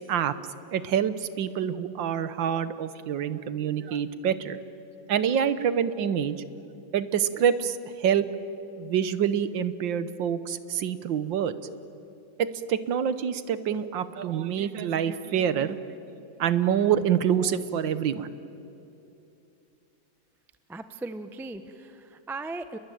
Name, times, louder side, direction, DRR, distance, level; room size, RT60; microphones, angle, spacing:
voice 1, 0.7-4.6 5.1-6.3 6.9-8.3 8.8-11.6 12.4-15.8 16.4-18.3, right 8 dB, 70° right, 13 dB, 1.7 m, -26 dB
voice 2, 20.7-22.8, right 2 dB, 5° right, 10 dB, 0.3 m, -38 dB
29.5 x 21.5 x 9.3 m, 2.7 s
omnidirectional pair, 2.2 m